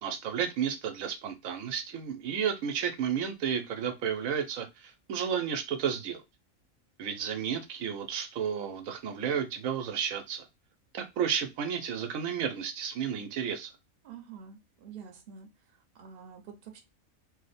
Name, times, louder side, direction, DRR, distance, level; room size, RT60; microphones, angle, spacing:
voice 1, 0.0-6.2 7.0-10.5 10.9-13.7, right 8 dB, 80° right, 1.1 m, -32 dB
voice 2, 14.0-15.5 15.9-16.8, right 7 dB, 50° right, 0.9 m, -47 dB
2.8 x 2.1 x 4.1 m
omnidirectional pair, 1.4 m